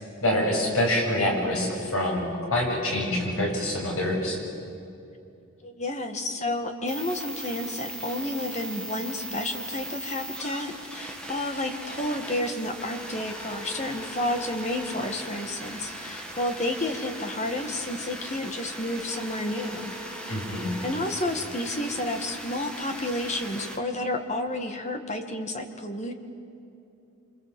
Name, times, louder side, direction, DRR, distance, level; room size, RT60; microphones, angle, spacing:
voice 1, 0.2-4.4 20.3-20.7, left 1 dB, 80° left, -1 dB, 7.7 m, -26 dB
voice 2, 5.6-19.9 20.8-26.1, left 1 dB, 30° left, 5 dB, 2.0 m, -31 dB
sound 1, 6.9-23.8, right 1 dB, 5° left, 2.3 m, -39 dB
27.0 x 26.5 x 7.8 m, 2.7 s
head